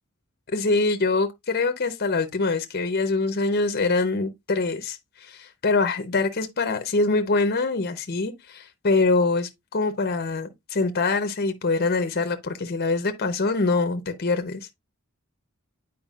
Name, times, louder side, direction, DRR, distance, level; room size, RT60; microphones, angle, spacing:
voice 1, 0.5-14.6, left 3 dB, 45° left, 0.7 m, -24 dB
9.0 x 4.7 x 2.3 m
head